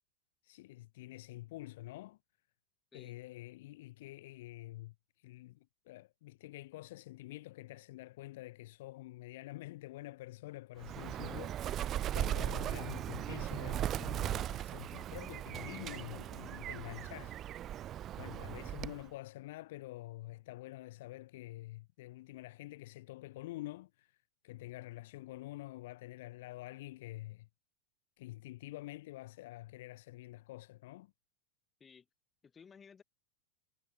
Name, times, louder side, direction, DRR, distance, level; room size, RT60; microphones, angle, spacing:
voice 1, 0.4-2.2 2.9-17.4 18.2-24.2 24.4-27.5 28.2-31.1, left 17 dB, 55° left, 2.2 m, -47 dB
Bird, 10.8-19.1, right 11 dB, 30° right, 0.4 m, -38 dB
voice 2, 32.4-33.0, left 6 dB, 20° left, 5.0 m, -57 dB
figure-of-eight pair, 90°, 0 cm